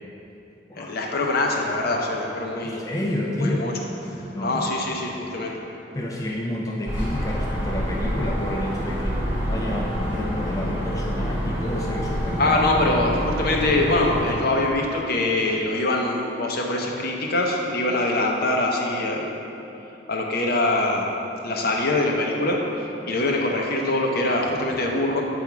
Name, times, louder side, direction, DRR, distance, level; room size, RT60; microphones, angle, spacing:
voice 1, 0.7-2.8 3.4-3.7 4.1-5.5 12.4-19.4 20.1-21.1 21.4-25.2, left 2 dB, 55° left, 0 dB, 0.7 m, -24 dB
voice 2, 2.6-3.7 4.3-4.7 5.9-9.2 9.5-12.6, left 1 dB, 20° left, -2 dB, 0.4 m, -29 dB
sound 1, 6.8-14.3, equal, 10° right, 1.4 m, -27 dB
7.0 x 3.5 x 4.6 m, 3.0 s
head